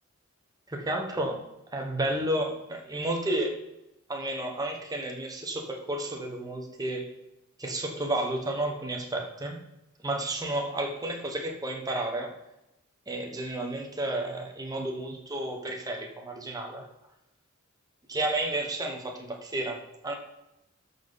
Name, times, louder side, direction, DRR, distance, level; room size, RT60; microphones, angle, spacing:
voice 1, 0.7-1.4 1.7-3.6 4.1-7.1 7.6-9.6 10.0-12.3 13.1-16.8 18.1-20.2, right 1 dB, 20° right, 1 dB, 1.2 m, -31 dB
13.0 x 5.6 x 4.0 m, 0.92 s
head